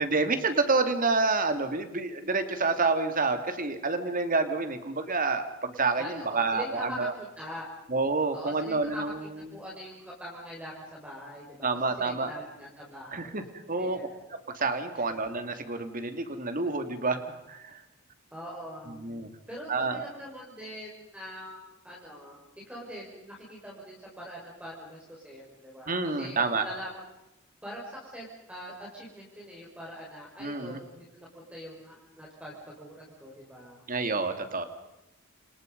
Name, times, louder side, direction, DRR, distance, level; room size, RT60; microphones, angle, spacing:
voice 1, 0.0-7.1 7.9-9.4 11.6-12.3 13.1-13.4 13.7-14.1 14.5-17.2 17.5-17.8 19.0-19.3 19.7-20.0 25.9-26.6 30.4-30.8 33.9-34.6, right 3 dB, 45° right, 8 dB, 2.7 m, -28 dB
voice 2, 6.0-7.7 8.3-9.0 9.5-11.7 12.0-13.3 13.8-14.2 14.9-15.0 18.3-19.0 19.5-22.4 22.7-26.9 27.6-33.8, equal, 5° right, -4 dB, 5.8 m, -43 dB
29.0 x 27.5 x 5.4 m, 0.92 s
head